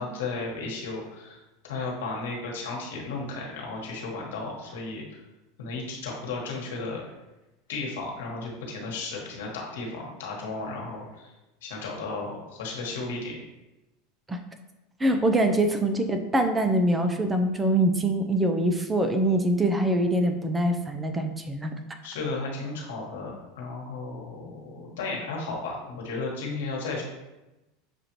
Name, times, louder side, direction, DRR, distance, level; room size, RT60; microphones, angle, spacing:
voice 1, 0.0-1.4 1.6-5.2 5.6-7.0 7.7-11.3 11.6-13.4 22.0-27.0, left 3 dB, 85° left, -2 dB, 1.3 m, -34 dB
voice 2, 15.0-21.7, right 1 dB, 15° right, 6 dB, 0.5 m, -24 dB
6.7 x 2.5 x 3.0 m, 1.0 s
supercardioid pair, 105°, 0 cm